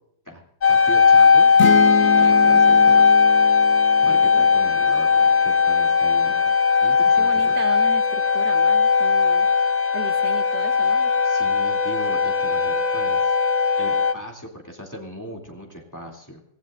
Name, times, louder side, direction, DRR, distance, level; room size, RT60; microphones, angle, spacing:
voice 1, 0.3-1.5 2.0-3.1 4.0-6.4 6.8-7.6 11.2-13.4 13.8-16.4, equal, 10° left, -1 dB, 2.5 m, -38 dB
sound 1, 0.6-14.1, left 5 dB, 35° left, 0.8 m, -18 dB
sound 2, 1.6-5.3, left 4 dB, 85° left, 1.7 m, -27 dB
voice 2, 4.1-4.5 7.2-9.5 9.9-11.1, right 8 dB, 85° right, 10 dB, 1.5 m, -37 dB
24.5 x 16.0 x 2.5 m, 0.75 s
omnidirectional pair, 1.7 m